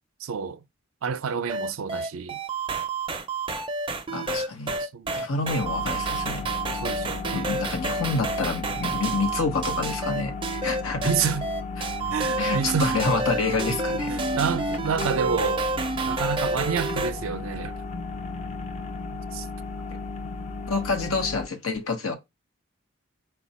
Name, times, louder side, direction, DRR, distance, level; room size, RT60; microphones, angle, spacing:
voice 1, 0.2-0.6 1.0-2.4 4.8-5.2 6.8-7.5 11.0-11.5 12.1-13.0 14.1-15.6 16.1-17.8 19.1-19.5, right 6 dB, 80° right, 0.4 m, -29 dB
sound 1, 1.5-17.1, right 3 dB, 25° right, 0.4 m, -29 dB
voice 2, 4.1-4.7 5.1-6.5 7.3-11.1 12.4-14.1 20.7-22.2, left 3 dB, 90° left, 1.0 m, -28 dB
sound 2, 5.6-21.5, left 4 dB, 35° left, 0.4 m, -35 dB
4.7 x 2.2 x 4.1 m
head